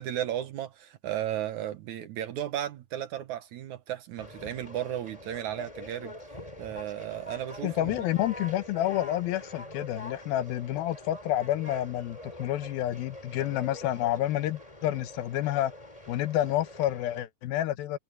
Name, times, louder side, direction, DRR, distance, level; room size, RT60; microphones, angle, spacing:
voice 1, 0.0-6.1 6.6-8.1, right 11 dB, 65° right, 2.1 m, -34 dB
Conversation, 4.2-17.2, left 1 dB, 10° left, 3.3 m, -44 dB
voice 2, 7.6-15.7 16.1-18.0, left 13 dB, 90° left, 2.8 m, -29 dB
omnidirectional pair, 4.1 m